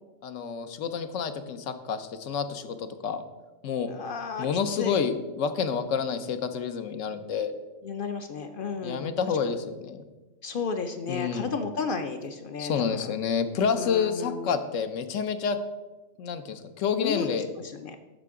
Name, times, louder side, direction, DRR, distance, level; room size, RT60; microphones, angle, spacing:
voice 1, 0.2-3.2 3.6-3.9 4.4-7.5 8.8-10.1 11.1-11.5 12.6-15.6 16.2-17.5, left 6 dB, 75° left, 9 dB, 1.0 m, -29 dB
voice 2, 3.9-4.5 4.8-5.0 7.8-9.2 10.4-13.1 13.7-14.6 17.0-18.0, left 5 dB, 55° left, 7 dB, 0.6 m, -33 dB
10.0 x 6.7 x 3.6 m, 1.2 s
omnidirectional pair, 1.3 m